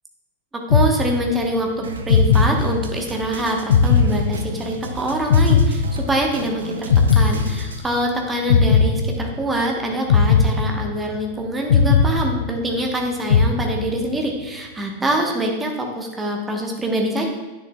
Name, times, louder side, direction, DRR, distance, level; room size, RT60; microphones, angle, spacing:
voice 1, 0.5-17.3, right 1 dB, 15° right, 1 dB, 1.1 m, -24 dB
sound 1, 0.7-1.6 2.1-3.2 3.7-4.9 5.3-6.5 6.9-8.1 8.5-9.6 10.1-11.3 11.7-12.9 13.3-14.2, left 5 dB, 60° left, 0.4 m, -18 dB
Drum kit, 1.8-7.8, right 4 dB, 65° right, 0.6 m, -35 dB
9.7 x 6.6 x 2.3 m, 1.1 s
figure-of-eight pair, 90°, 0 cm